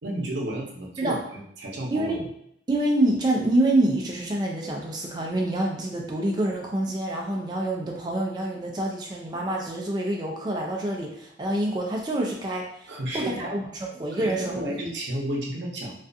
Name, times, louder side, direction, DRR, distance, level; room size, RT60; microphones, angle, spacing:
voice 1, 0.0-2.3 12.9-13.5 14.1-15.9, right 1 dB, 85° right, -1 dB, 0.6 m, -32 dB
voice 2, 1.9-2.2 2.7-14.8, right 1 dB, 25° right, -1 dB, 0.3 m, -27 dB
2.4 x 2.3 x 2.5 m, 0.72 s
head